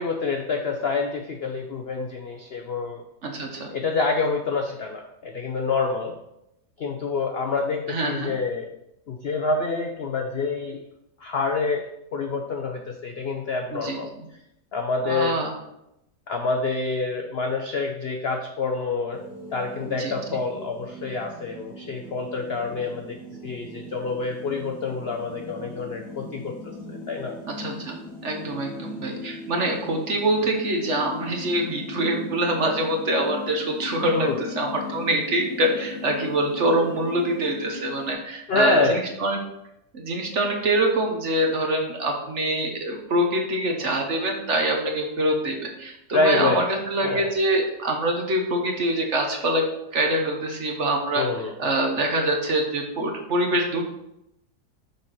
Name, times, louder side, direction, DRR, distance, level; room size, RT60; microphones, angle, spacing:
voice 1, 0.0-3.0 3.7-6.1 6.8-8.7 9.1-10.8 11.2-11.9 12.1-14.1 14.7-15.4 16.3-19.2 19.5-23.2 23.4-27.3 34.0-34.4 38.5-39.0 46.1-46.6 47.0-47.3 51.1-51.5, left 3 dB, 60° left, 3 dB, 0.6 m, -27 dB
voice 2, 3.2-3.7 7.9-8.3 13.7-14.2 15.0-15.5 19.8-20.4 27.5-28.0 28.2-39.4 39.9-49.6 49.9-51.2 51.6-53.8, right 1 dB, 50° right, 2 dB, 1.2 m, -25 dB
sound 1, 19.1-38.1, left 4 dB, 85° left, 3.3 m, -39 dB
6.7 x 4.1 x 6.1 m, 0.84 s
omnidirectional pair, 1.8 m